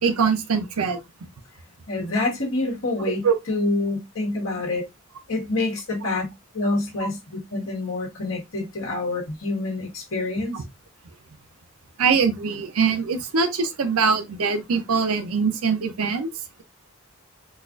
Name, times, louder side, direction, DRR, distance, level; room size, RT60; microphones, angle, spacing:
voice 1, 0.0-1.0 3.2-3.3 10.5-10.6 12.0-16.3, right 5 dB, 90° right, 0.6 m, -22 dB
voice 2, 1.9-4.8 5.3-6.2 6.5-10.6, left 2 dB, 75° left, 1.4 m, -27 dB
4.0 x 2.4 x 2.5 m
head